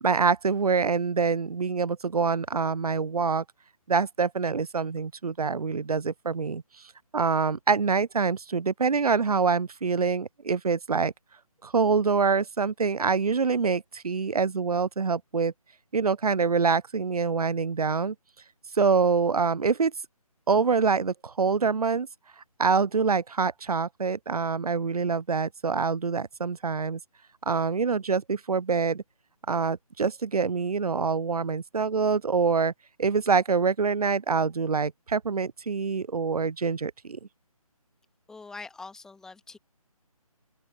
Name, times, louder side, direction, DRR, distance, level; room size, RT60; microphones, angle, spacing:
voice 1, 0.0-3.4 3.9-6.6 7.1-11.1 11.6-15.5 15.9-18.2 18.8-19.9 20.5-22.1 22.6-27.0 27.5-29.0 29.5-32.7 33.0-37.2, right 5 dB, 80° right, 0.4 m, -25 dB
voice 2, 38.3-39.6, left 3 dB, 5° left, 2.2 m, -43 dB
open air
figure-of-eight pair, 150°, 19 cm